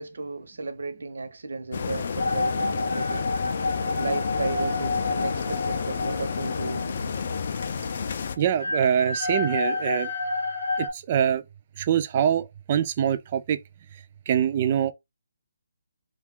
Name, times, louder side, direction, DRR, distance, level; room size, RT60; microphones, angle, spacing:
voice 1, 0.0-3.3 3.9-7.2, right 3 dB, 70° right, 0.8 m, -34 dB
sound 1, 1.7-8.4, left 6 dB, 45° left, 0.4 m, -30 dB
sound 2, 2.2-10.9, left 2 dB, 90° left, 0.8 m, -30 dB
voice 2, 8.4-10.1 10.8-11.4 11.8-13.6 14.3-14.9, right 9 dB, 30° right, 0.3 m, -24 dB
2.6 x 2.3 x 3.5 m
hypercardioid pair, 165°, 0 cm